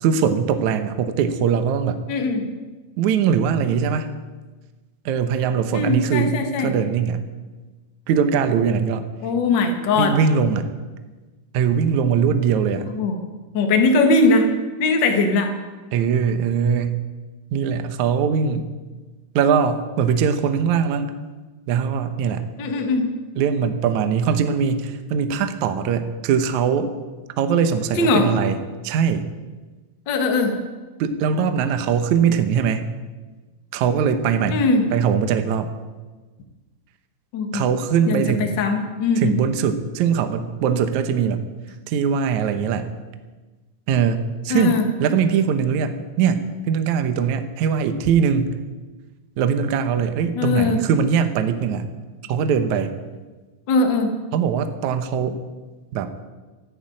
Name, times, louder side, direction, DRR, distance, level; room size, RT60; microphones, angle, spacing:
voice 1, 0.0-2.0 3.0-4.1 5.1-7.2 8.1-9.1 10.0-10.7 11.5-12.9 15.9-17.0 17.5-18.7 19.4-21.1 21.7-22.5 23.4-26.9 27.4-29.3 31.0-32.9 33.7-34.6 34.9-35.7 37.5-38.6 39.2-41.5 41.9-42.9 43.9-44.2 44.4-48.6 49.4-51.9 52.3-52.9 54.3-55.4 55.9-56.1, right 7 dB, 75° right, 9 dB, 1.7 m, -21 dB
voice 2, 2.1-2.5 5.7-6.7 9.2-10.1 12.8-13.2 13.5-14.5 14.8-15.5 22.6-23.1 28.0-28.3 30.1-30.6 34.5-34.9 37.3-37.6 38.1-39.4 44.5-44.9 50.3-50.8 53.7-54.1, left 3 dB, 70° left, 4 dB, 1.0 m, -20 dB
14.0 x 11.0 x 8.7 m, 1.3 s
omnidirectional pair, 4.7 m